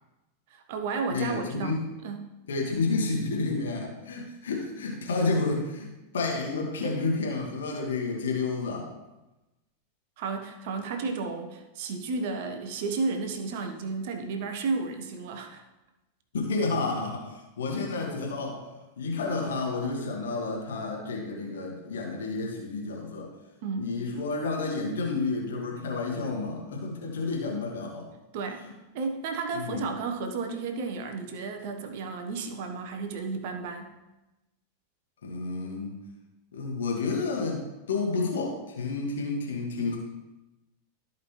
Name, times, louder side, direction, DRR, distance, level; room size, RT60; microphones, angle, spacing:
voice 1, 0.5-2.3 10.2-15.6 23.6-23.9 28.3-28.6 28.9-33.9, right 4 dB, 50° right, 5 dB, 1.2 m, -33 dB
voice 2, 1.1-1.9 2.5-5.9 6.1-8.9 16.3-18.6 19.0-23.3 23.7-28.1 29.5-29.8 35.2-35.9 36.5-40.0, left 3 dB, 65° left, 0 dB, 1.8 m, -30 dB
14.0 x 5.2 x 3.2 m, 1.0 s
figure-of-eight pair, 90°, 0 cm